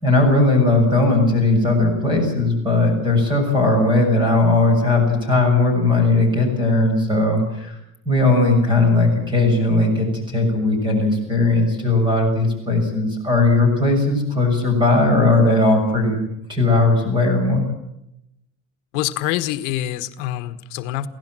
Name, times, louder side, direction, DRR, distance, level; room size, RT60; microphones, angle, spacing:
voice 1, 0.0-7.8 8.1-16.2 16.5-17.6, left 2 dB, 10° right, 3 dB, 6.8 m, -18 dB
voice 2, 18.9-21.1, left 14 dB, 65° left, 11 dB, 1.4 m, -25 dB
23.5 x 17.0 x 7.6 m, 0.83 s
cardioid pair, 175°, 37 cm